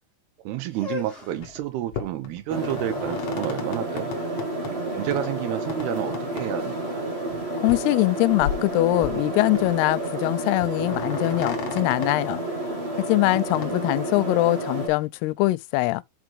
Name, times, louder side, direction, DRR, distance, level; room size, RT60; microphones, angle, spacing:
voice 1, 0.4-4.1 4.7-7.0, right 13 dB, 85° right, 2.9 m, -30 dB
sound 1, 0.7-6.6, left 6 dB, 25° left, 1.4 m, -42 dB
sound 2, 1.4-1.6 1.9-4.7 5.1-5.3 5.7-5.9 6.1-6.5 6.8-6.9 7.3-7.4 7.6-8.0 8.3-9.3 9.6-10.0 10.2-10.3 10.6-12.1 13.4-13.7, left 8 dB, 60° left, 1.9 m, -35 dB
sound 3, 2.5-14.9, right 1 dB, 55° right, 0.6 m, -30 dB
voice 2, 7.6-12.4 13.1-16.0, left 20 dB, 90° left, 2.6 m, -22 dB
6.1 x 5.8 x 4.9 m
omnidirectional pair, 4.5 m